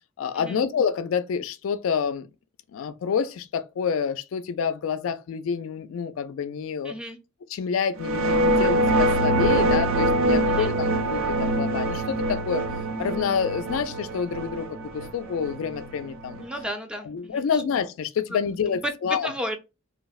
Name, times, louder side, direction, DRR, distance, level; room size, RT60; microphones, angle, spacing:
voice 1, 0.2-2.3 2.7-6.9 7.5-12.6 13.0-14.7 14.9-16.4 17.1-19.3, left 6 dB, 80° left, 0.3 m, -28 dB
voice 2, 6.8-7.2 10.5-10.7 16.4-17.6 18.3-19.6, equal, 5° right, 0.3 m, -34 dB
sound 1, 8.0-16.6, right 1 dB, 75° right, 0.4 m, -24 dB
2.8 x 2.0 x 2.3 m
head